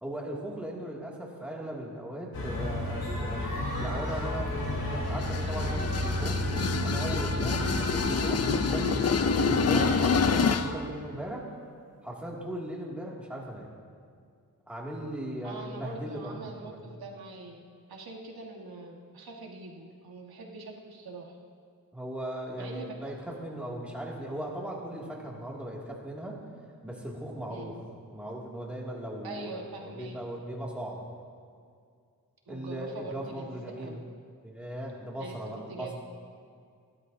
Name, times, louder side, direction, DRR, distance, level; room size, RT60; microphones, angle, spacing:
voice 1, 0.0-3.5 3.8-6.4 6.8-11.4 12.0-13.7 14.7-16.8 21.9-26.4 26.8-27.7 28.1-31.0 32.5-34.0 34.4-35.9, right 1 dB, 5° right, -4 dB, 2.5 m, -38 dB
sound 1, 2.3-10.3, left 1 dB, 75° left, 3.9 m, -31 dB
sound 2, 5.1-10.8, left 5 dB, 45° left, 0.6 m, -28 dB
voice 2, 7.4-7.8 15.4-21.4 22.6-22.9 27.5-27.8 29.2-30.2 32.5-34.0 35.2-35.9, right 3 dB, 90° right, 0 dB, 1.7 m, -43 dB
30.0 x 11.5 x 2.8 m, 2.2 s
wide cardioid pair, 145°, 36 cm